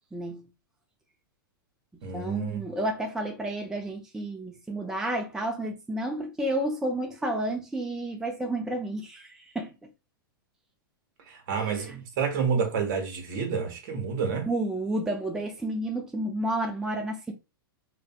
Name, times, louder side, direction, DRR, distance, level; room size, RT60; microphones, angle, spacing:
voice 1, 0.1-0.4 2.1-9.3 9.5-9.7 14.5-17.3, right 1 dB, 5° right, 0.4 m, -31 dB
voice 2, 2.0-2.6 11.3-14.5, right 6 dB, 55° right, 0.9 m, -29 dB
2.5 x 2.1 x 2.4 m
hypercardioid pair, 110°, 12 cm